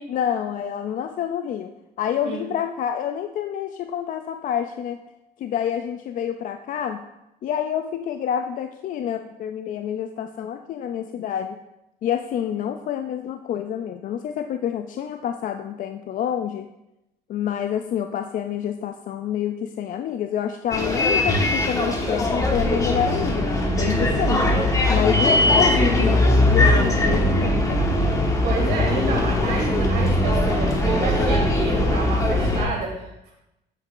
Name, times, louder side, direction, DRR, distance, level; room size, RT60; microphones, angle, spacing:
voice 1, 0.1-1.7 2.0-5.0 5.4-7.0 7.4-11.6 12.0-16.7 17.3-24.6 24.9-27.8, left 9 dB, 50° left, 7 dB, 0.4 m, -28 dB
Bus, 20.7-32.6, left 1 dB, 20° left, 1.1 m, -20 dB
voice 2, 28.4-33.3, right 4 dB, 75° right, -3 dB, 2.2 m, -29 dB
8.4 x 6.5 x 2.5 m, 0.90 s
cardioid pair, 110°, 17 cm